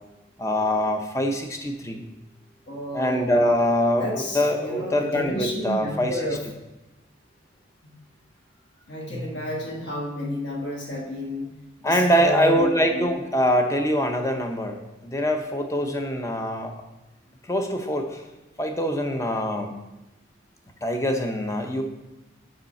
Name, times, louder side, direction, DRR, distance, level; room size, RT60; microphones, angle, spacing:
voice 1, 0.4-2.0 2.9-6.2 11.8-16.7 17.4-18.2 18.6-19.7 20.8-21.8, equal, 15° left, 5 dB, 0.6 m, -24 dB
voice 2, 2.7-3.4 4.0-6.4 7.8-7.9 8.9-11.5 11.8-13.1, left 1 dB, 55° left, -1 dB, 1.3 m, -31 dB
6.6 x 5.5 x 4.2 m, 0.99 s
head